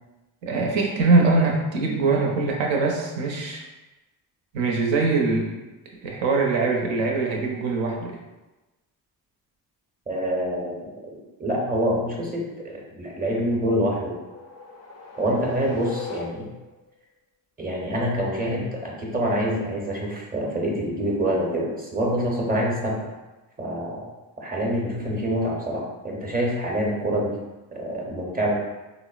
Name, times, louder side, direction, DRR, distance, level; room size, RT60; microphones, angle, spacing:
voice 1, 0.4-3.6 4.5-5.5 6.0-8.2, right 3 dB, 70° right, 0 dB, 0.8 m, -22 dB
voice 2, 10.1-10.9 11.4-14.2 15.2-16.5 17.6-23.1 23.6-24.1 24.4-27.4 27.7-28.6, equal, 20° right, -2 dB, 0.7 m, -26 dB
sound 1, 13.6-16.8, left 4 dB, 35° left, 0.4 m, -40 dB
3.6 x 2.0 x 2.4 m, 1.1 s
supercardioid pair, 75°, 47 cm